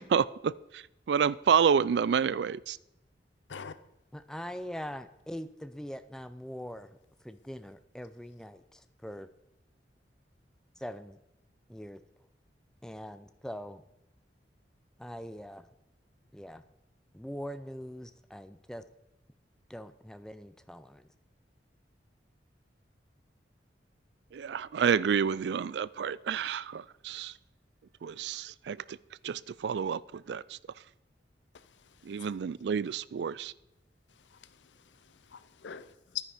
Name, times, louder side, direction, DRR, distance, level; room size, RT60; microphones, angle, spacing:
voice 1, 0.0-2.8 24.3-27.3 28.0-29.0 29.2-30.4 32.1-33.5, right 7 dB, 70° right, 0.3 m, -29 dB
voice 2, 4.1-7.0 7.2-9.3 10.8-11.2 11.7-12.0 12.8-13.8 15.0-15.7 16.3-16.6 17.1-18.8 19.7-21.1, equal, 5° left, 0.5 m, -42 dB
voice 3, 31.5-32.3 34.1-36.2, left 9 dB, 85° left, 0.6 m, -45 dB
10.5 x 9.8 x 5.0 m
head